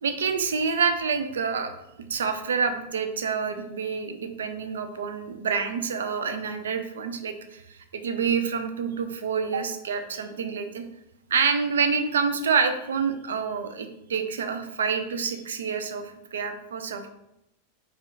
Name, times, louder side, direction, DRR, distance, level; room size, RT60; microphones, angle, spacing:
voice 1, 0.0-1.7 2.1-10.8 11.3-17.1, right 5 dB, 65° right, 8 dB, 0.3 m, -27 dB
3.3 x 2.3 x 2.9 m, 0.85 s
figure-of-eight pair, 90°, 0 cm